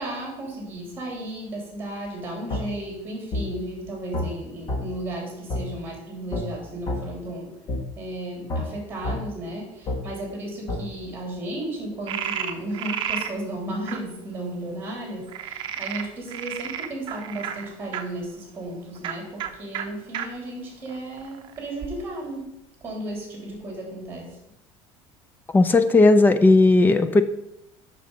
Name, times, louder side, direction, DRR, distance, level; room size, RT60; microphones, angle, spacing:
voice 1, 0.0-7.6 7.9-22.5 22.8-24.4, right 1 dB, 20° right, -1 dB, 3.3 m, -34 dB
sound 1, 2.5-2.6 3.3-3.5 4.1-4.3 4.7-4.8 5.5-5.6 6.3-6.4 6.9-7.0 7.7-7.8 8.5-8.6 9.0-9.2 9.9-10.0 10.7-10.8, left 2 dB, 30° left, 1.7 m, -27 dB
Frog, 12.1-13.3 13.9-14.0 15.3-18.0 19.0-19.1 19.4-19.5 19.7-19.8 20.1-20.3 20.9-21.6, right 9 dB, 40° right, 0.8 m, -31 dB
voice 2, 25.5-27.2, left 2 dB, 15° left, 11 dB, 0.5 m, -16 dB
6.7 x 6.3 x 5.6 m, 0.83 s
cardioid pair, 155°, 12 cm